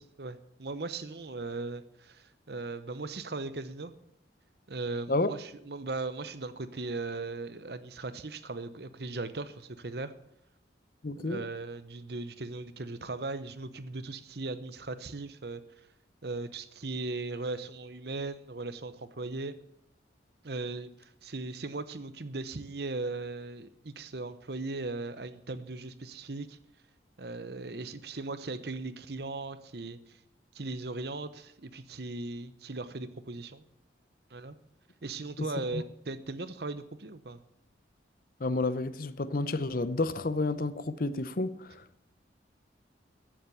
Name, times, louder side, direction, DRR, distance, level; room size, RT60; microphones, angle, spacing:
voice 1, 0.2-3.9 4.7-10.1 11.2-15.6 16.2-19.6 20.4-26.6 27.2-30.2 30.5-33.6 34.3-34.6 35.0-37.4, right 3 dB, 60° right, 0.9 m, -38 dB
voice 2, 11.0-11.4 35.7-35.8 38.4-41.8, left 2 dB, 50° left, 0.7 m, -30 dB
14.5 x 7.7 x 7.0 m
head